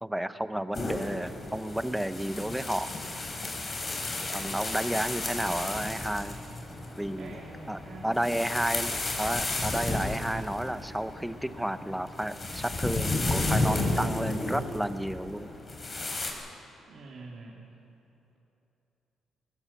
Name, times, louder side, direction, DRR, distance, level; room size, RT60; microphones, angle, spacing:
voice 1, 0.0-3.0 4.3-6.4 7.0-7.4 7.7-15.5, right 1 dB, 5° right, 12 dB, 0.8 m, -32 dB
sound 1, 0.7-16.3, left 2 dB, 30° left, 3.9 m, -33 dB
voice 2, 7.2-8.2 16.9-17.6, right 3 dB, 60° right, -4 dB, 2.9 m, -45 dB
20.5 x 20.0 x 7.3 m, 3.0 s
cardioid pair, 110°, 0 cm